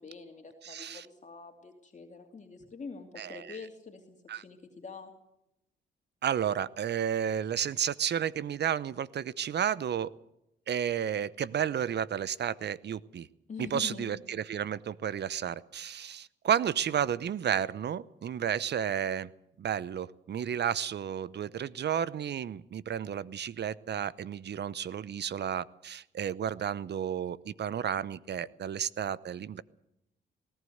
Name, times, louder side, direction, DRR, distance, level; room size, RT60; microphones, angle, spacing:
voice 1, 0.0-5.1 13.5-14.2, left 5 dB, 35° left, 3 dB, 2.8 m, -45 dB
voice 2, 0.6-1.0 3.2-3.6 4.3-4.4 6.2-10.1 10.7-13.3 13.6-19.3 19.6-29.6, right 9 dB, 55° right, 19 dB, 0.8 m, -32 dB
19.0 x 17.5 x 8.0 m, 0.83 s
supercardioid pair, 65°, 21 cm